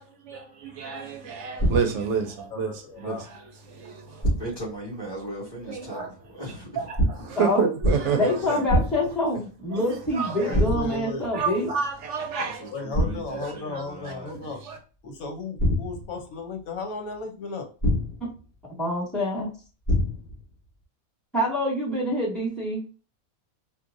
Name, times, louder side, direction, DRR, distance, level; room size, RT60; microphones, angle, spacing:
voice 1, 0.0-2.7 3.0-3.2 3.7-4.3 5.7-6.1 6.8-8.3 9.7-10.6 11.3-12.7 13.4-13.8 14.6-14.8, right 6 dB, 65° right, 0.8 m, -29 dB
sound 1, 1.6-2.2 4.2-4.7 7.0-7.4 7.8-8.3 8.7-9.2 10.5-11.1 12.9-13.4 15.6-16.2 17.8-18.4 19.9-20.4, equal, 35° left, 2.4 m, -25 dB
voice 2, 2.5-3.3 10.4-11.3 12.7-14.6 15.0-17.7, left 3 dB, 70° left, 1.3 m, -35 dB
voice 3, 4.1-6.9 7.3-7.4 8.0-8.8 9.3-9.4 12.4-14.4, right 1 dB, 15° left, 1.9 m, -38 dB
voice 4, 7.4-7.7 8.1-11.7 18.8-19.5 21.3-22.8, left 1 dB, ahead, 1.8 m, -26 dB
4.5 x 2.6 x 2.6 m
omnidirectional pair, 1.5 m